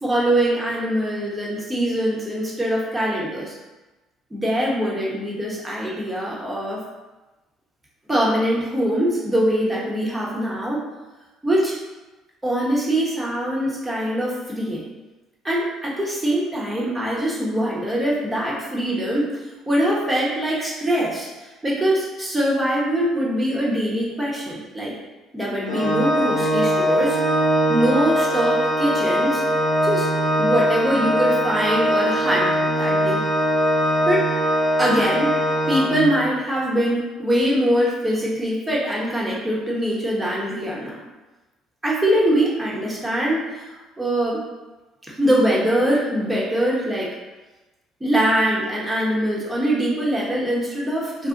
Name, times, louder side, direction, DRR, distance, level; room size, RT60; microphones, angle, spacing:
voice 1, 0.0-3.5 4.3-6.8 8.1-10.8 11.4-11.8 12.4-14.8 15.4-19.3 19.7-21.3 21.6-25.0 25.3-27.2 27.7-29.4 29.8-30.1 30.4-32.5 32.8-33.2 34.1-34.3 34.8-35.3 35.7-41.0 41.8-44.4 45.1-47.1 48.0-51.3, right 1 dB, 15° right, -4 dB, 1.0 m, -23 dB
Organ, 25.7-36.4, equal, 55° left, 0.7 m, -21 dB
2.5 x 2.3 x 3.7 m, 1.1 s
hypercardioid pair, 65°, 0 cm